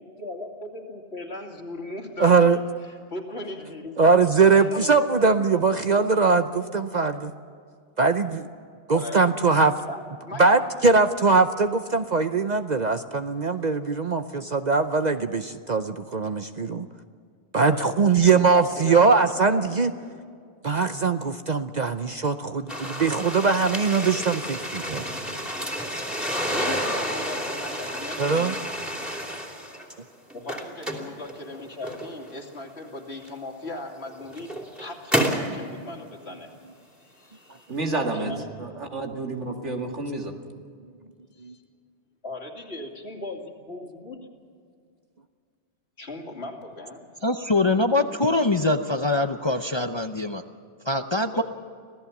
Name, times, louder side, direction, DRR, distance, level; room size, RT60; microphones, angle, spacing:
voice 1, 0.0-2.6 2.9-4.0 4.6-5.6 6.0-6.4 8.9-9.3 9.8-10.6 17.7-18.0 18.3-19.2 19.6-19.7 20.0-20.2 26.5-28.6 30.3-36.5 36.8-38.5 41.4-41.6 42.2-44.3 46.0-47.1 51.3-51.4, left 2 dB, 65° left, 2 dB, 2.8 m, -38 dB
voice 2, 2.2-2.6 4.0-7.3 8.0-8.4 8.9-9.7 10.4-16.9 17.5-19.9 20.6-25.0 28.2-28.6 41.4-41.5, right 4 dB, 45° right, 9 dB, 0.7 m, -21 dB
sound 1, 22.7-29.9 30.3-32.3 33.2-33.3 34.1-35.5, equal, ahead, 3.0 m, -30 dB
voice 3, 37.7-38.3 38.6-40.3, right 2 dB, 85° right, 3 dB, 2.4 m, -29 dB
voice 4, 47.2-50.4 50.9-51.4, left 2 dB, 30° left, 7 dB, 0.7 m, -23 dB
26.0 x 16.5 x 7.2 m, 2.2 s
omnidirectional pair, 1.2 m